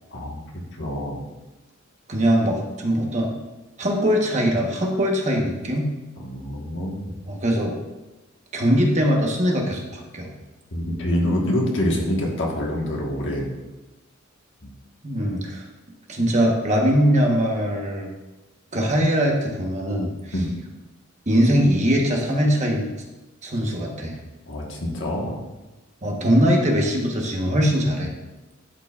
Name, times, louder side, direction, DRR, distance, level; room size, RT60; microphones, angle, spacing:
voice 1, 0.8-1.2 6.2-7.1 10.7-13.5 14.6-14.7 20.3-20.5 24.5-25.4, left 1 dB, 60° left, -1 dB, 1.4 m, -26 dB
voice 2, 2.1-3.3 3.8-5.9 7.2-7.7 8.5-10.3 15.0-15.6 16.1-18.1 18.7-20.2 21.3-22.9 23.4-24.2 26.0-28.1, equal, 35° right, 0 dB, 1.1 m, -21 dB
12.0 x 4.8 x 2.4 m, 1.1 s
head